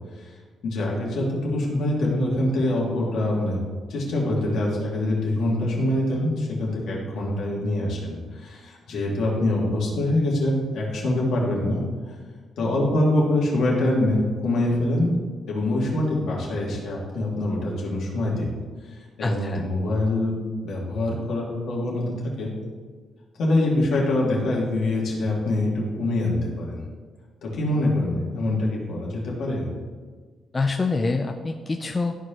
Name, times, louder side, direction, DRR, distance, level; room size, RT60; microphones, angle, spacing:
voice 1, 0.6-3.6 3.9-11.8 12.6-15.1 15.5-18.5 18.9-22.5 23.4-26.8 27.4-29.7, left 1 dB, 65° left, -3 dB, 2.2 m, -24 dB
voice 2, 19.2-19.7 30.5-32.1, left 3 dB, 20° left, 3 dB, 0.4 m, -25 dB
13.5 x 4.6 x 3.0 m, 1.5 s
cardioid pair, 150°, 0 cm